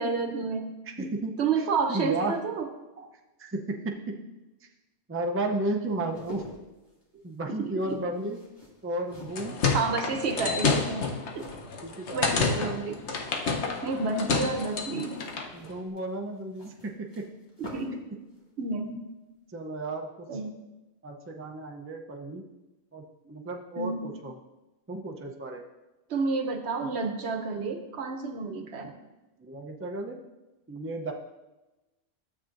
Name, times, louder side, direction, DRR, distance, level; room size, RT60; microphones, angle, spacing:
voice 1, 0.0-0.7 1.4-2.7 3.0-3.1 7.6-8.0 9.7-11.1 11.3-11.5 12.1-13.0 13.8-15.2 17.6-18.0 18.6-19.1 20.3-20.5 23.8-24.0 26.1-28.9, right 4 dB, 75° right, 5 dB, 1.1 m, -30 dB
voice 2, 0.9-2.4 3.4-4.2 4.6-4.7 5.1-6.4 7.2-8.4 8.8-9.6 11.8-12.8 13.6-13.7 15.5-17.3 19.5-20.3 21.0-22.4 22.9-24.3 24.9-25.6 29.4-30.2 30.7-31.1, right 2 dB, 15° right, 1 dB, 0.5 m, -33 dB
sound 1, 5.9-12.3 12.6-13.2 14.6-18.0 18.3-18.5, left 1 dB, 25° left, 2.0 m, -48 dB
sound 2, 9.1-15.5, left 4 dB, 85° left, 1.2 m, -29 dB
12.0 x 7.4 x 2.6 m, 1.1 s
omnidirectional pair, 1.1 m